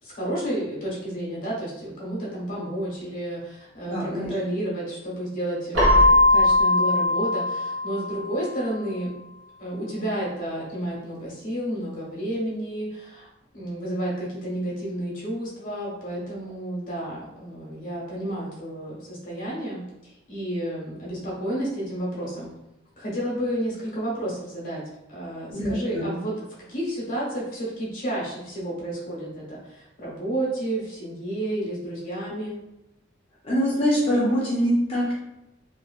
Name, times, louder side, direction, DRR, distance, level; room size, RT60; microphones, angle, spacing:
voice 1, 0.0-9.1 9.6-13.3 13.5-22.5 23.0-24.8 25.1-26.3 26.7-32.6, right 1 dB, 45° left, -5 dB, 1.2 m, -31 dB
voice 2, 3.9-4.3 25.5-26.1 33.4-35.1, equal, 30° left, -6 dB, 0.6 m, -24 dB
Keyboard (musical), 5.7-8.5, left 2 dB, 90° right, 1.2 m, -20 dB
3.1 x 2.4 x 2.3 m, 0.91 s
head